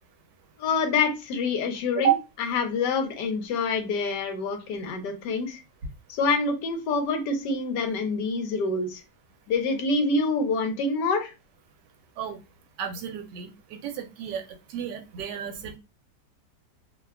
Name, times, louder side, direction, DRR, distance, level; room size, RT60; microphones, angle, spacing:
voice 1, 0.6-2.1 2.4-5.6 6.1-9.0 9.5-11.3, left 4 dB, 85° left, 5 dB, 1.3 m, -26 dB
voice 2, 12.8-14.4 14.7-15.8, right 9 dB, 85° right, 5 dB, 1.2 m, -30 dB
3.0 x 2.2 x 2.3 m, 0.27 s
omnidirectional pair, 1.8 m